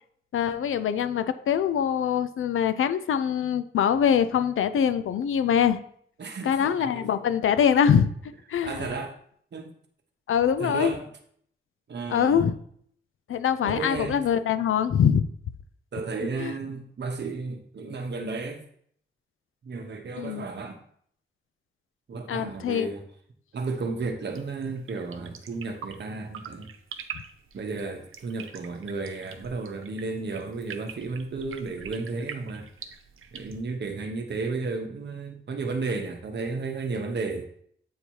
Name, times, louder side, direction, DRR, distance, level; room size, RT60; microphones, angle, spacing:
voice 1, 0.3-5.8 6.4-8.1 8.5-8.9 10.3-11.0 12.1-12.6 13.3-15.3 16.4-16.5 20.2-20.5 22.3-22.9, left 8 dB, 85° left, 12 dB, 0.5 m, -23 dB
voice 2, 6.2-7.1 8.6-9.2 9.5-9.7 10.6-11.1 11.9-12.5 13.6-14.2 15.9-18.6 19.6-20.8 22.1-23.0 23.5-26.7 27.5-32.7 33.3-37.5, right 3 dB, 55° right, 4 dB, 1.0 m, -33 dB
sound 1, 24.2-33.6, right 7 dB, 90° right, 0.6 m, -44 dB
8.1 x 2.8 x 4.6 m, 0.64 s
wide cardioid pair, 130°, 21 cm